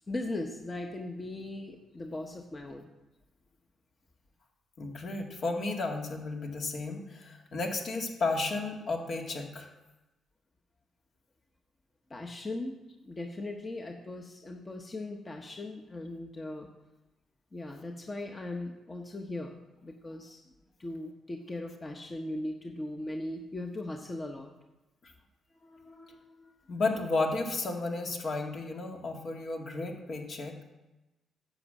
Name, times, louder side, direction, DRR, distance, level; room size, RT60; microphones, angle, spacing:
voice 1, 0.1-2.9 12.1-12.7 13.0-16.7 17.5-20.4 20.8-24.5 25.6-26.5, left 2 dB, 25° left, 2 dB, 1.1 m, -39 dB
voice 2, 4.8-9.7 25.0-25.1 26.7-30.6, left 3 dB, 55° left, 1 dB, 2.1 m, -33 dB
10.5 x 6.1 x 7.7 m, 1.0 s
cardioid pair, 90°, 0 cm